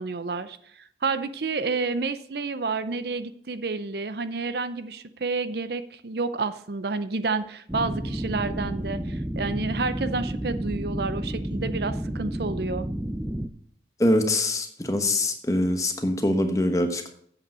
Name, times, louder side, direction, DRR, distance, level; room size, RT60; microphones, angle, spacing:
voice 1, 0.0-12.9, right 3 dB, 60° right, 12 dB, 0.6 m, -30 dB
sound 1, 7.7-13.5, right 1 dB, 10° right, 0.5 m, -31 dB
voice 2, 14.0-17.1, left 1 dB, 20° left, 6 dB, 1.1 m, -23 dB
8.3 x 7.8 x 5.5 m, 0.63 s
head